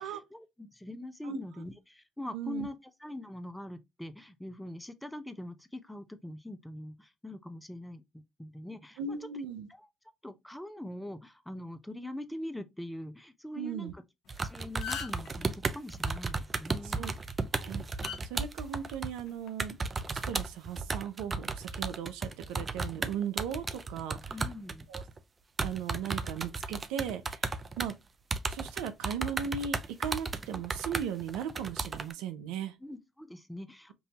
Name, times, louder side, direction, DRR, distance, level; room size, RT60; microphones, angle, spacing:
voice 1, 0.0-2.7 3.0-9.2 9.7-9.9 10.2-14.0 14.4-17.1 24.3-24.9 32.8-33.9, left 1 dB, 5° left, 0.9 m, -43 dB
voice 2, 2.3-2.7 9.0-9.7 13.5-13.9 16.8-17.1 17.6-17.8 18.2-19.8 20.1-24.3 24.9-25.0 25.6-28.0 28.5-32.7, right 8 dB, 80° right, 0.6 m, -37 dB
sound 1, 14.3-14.4 14.6-15.3 16.9-17.2 18.0-18.2 19.2-19.5, left 8 dB, 70° left, 1.0 m, -38 dB
sound 2, 14.3-19.2 19.6-25.2 25.6-27.9 28.3-32.1, right 4 dB, 35° right, 0.6 m, -34 dB
5.4 x 2.7 x 2.9 m
hypercardioid pair, 55°, 0 cm